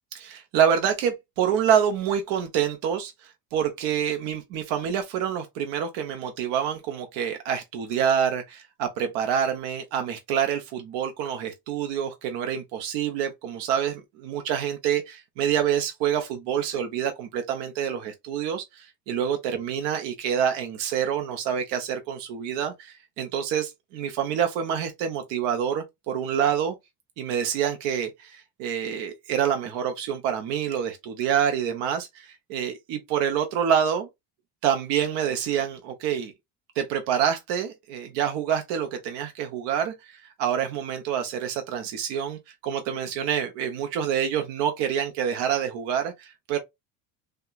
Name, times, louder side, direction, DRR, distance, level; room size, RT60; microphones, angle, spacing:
voice 1, 0.1-26.7 27.2-34.1 34.6-36.3 36.8-46.6, right 8 dB, 80° right, 0.7 m, -27 dB
2.8 x 2.2 x 2.2 m
cardioid pair, 115°, 42 cm